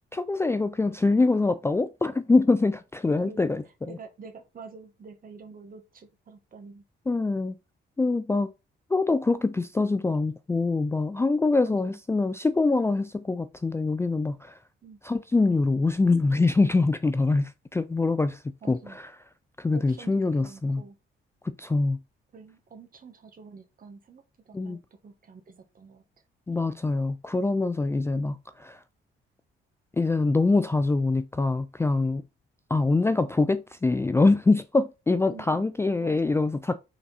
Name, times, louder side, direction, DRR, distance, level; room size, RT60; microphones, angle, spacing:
voice 1, 0.1-3.9 7.1-7.6 8.0-8.5 8.9-14.6 15.0-18.4 18.7-19.1 19.6-20.8 21.4-22.0 24.5-24.8 26.5-28.4 28.6-28.8 30.0-32.2 32.7-36.8, left 3 dB, 15° left, 0.4 m, -24 dB
voice 2, 3.8-6.8 11.6-12.0 14.8-15.0 18.6-19.0 19.7-21.0 22.3-26.2 35.3-35.7 36.0-36.3, right 5 dB, 45° right, 1.6 m, -47 dB
5.8 x 4.2 x 4.1 m
cardioid pair, 90°, 20 cm